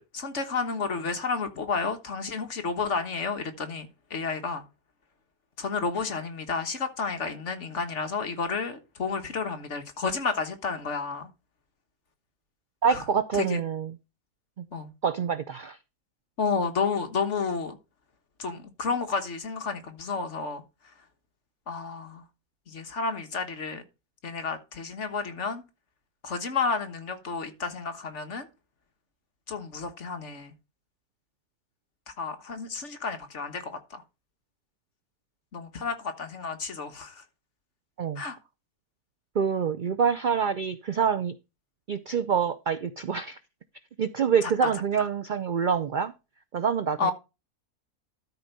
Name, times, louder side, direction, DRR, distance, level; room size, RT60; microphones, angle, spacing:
voice 1, 0.0-4.6 5.6-11.3 12.9-13.0 13.3-13.6 14.7-14.9 16.4-17.8 18.4-20.6 21.7-22.2 22.7-23.8 24.2-25.6 26.2-28.5 29.5-30.5 32.2-34.0 35.5-37.2 38.2-38.4 44.4-44.7 47.0-47.1, left 4 dB, 50° left, 1.6 m, -31 dB
voice 2, 12.8-13.9 14.6-14.7 15.0-15.8 38.0-38.2 39.3-41.3 41.9-43.4 44.0-46.1 46.5-47.1, right 6 dB, 75° right, 0.4 m, -26 dB
12.5 x 4.5 x 5.3 m
omnidirectional pair, 1.6 m